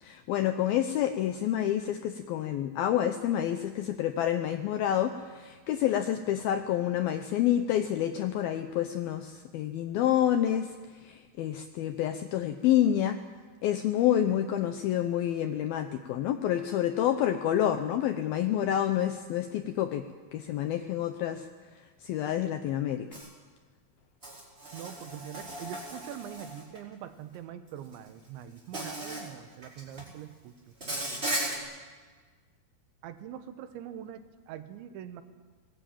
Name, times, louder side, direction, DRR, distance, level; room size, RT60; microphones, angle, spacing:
voice 1, 0.0-10.8 11.0-13.2 13.6-20.0 20.3-21.5 22.0-23.1, left 11 dB, 80° left, 8 dB, 2.2 m, -28 dB
Insect, 23.1-23.3 24.2-26.8 27.9-28.1 28.7-29.3 29.6-30.1 30.8-31.6, right 1 dB, 15° right, 4.5 m, -36 dB
voice 2, 24.7-30.5 33.0-35.2, right 10 dB, 80° right, 10 dB, 3.5 m, -43 dB
21.5 x 20.0 x 9.0 m, 1.4 s
omnidirectional pair, 5.3 m